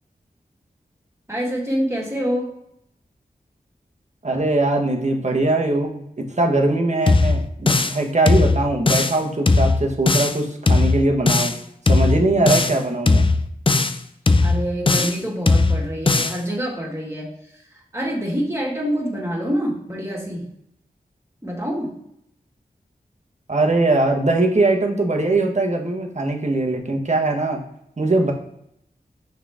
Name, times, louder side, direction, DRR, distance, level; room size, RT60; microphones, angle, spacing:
voice 1, 1.3-2.5 14.4-17.3 17.9-20.4 21.4-21.9, equal, 15° right, -2 dB, 2.1 m, -26 dB
voice 2, 4.2-6.0 6.4-11.5 11.9-13.3 23.5-27.6 28.0-28.3, right 2 dB, 45° right, 2 dB, 1.3 m, -21 dB
sound 1, 7.1-8.0 8.3-9.2 9.5-10.4 10.7-11.6 11.9-12.8 13.1-14.0 14.3-15.2 15.5-16.4, left 3 dB, 35° left, 0.5 m, -18 dB
6.3 x 4.3 x 3.7 m, 0.75 s
wide cardioid pair, 55°, 16 cm